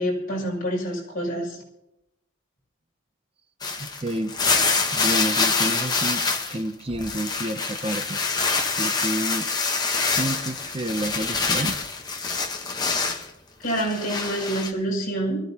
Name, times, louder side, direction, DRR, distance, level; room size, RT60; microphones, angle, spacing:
voice 1, 0.0-1.6 13.6-15.4, right 1 dB, 40° left, -3 dB, 6.2 m, -27 dB
sound 1, 3.6-6.6 6.9-13.3 13.7-14.7, left 4 dB, 20° left, 1.1 m, -25 dB
voice 2, 3.8-4.3 4.9-6.2 6.5-8.2 8.8-9.5 10.0-11.8, right 1 dB, 25° right, 7 dB, 0.6 m, -29 dB
24.0 x 14.5 x 2.9 m, 0.87 s
head